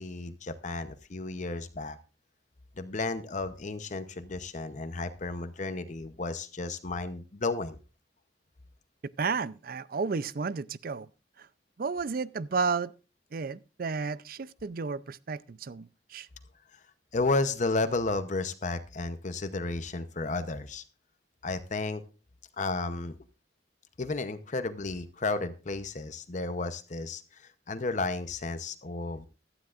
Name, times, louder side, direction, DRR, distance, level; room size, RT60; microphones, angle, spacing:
voice 1, 0.0-2.0 2.8-7.8 16.7-16.8 17.1-20.8 21.4-22.0 22.6-23.2 24.0-29.3, left 3 dB, 45° left, 0.8 m, -33 dB
voice 2, 9.2-11.1 11.4-11.5 11.8-12.9 13.3-16.3, right 5 dB, 55° right, 0.5 m, -32 dB
16.0 x 12.0 x 2.5 m
head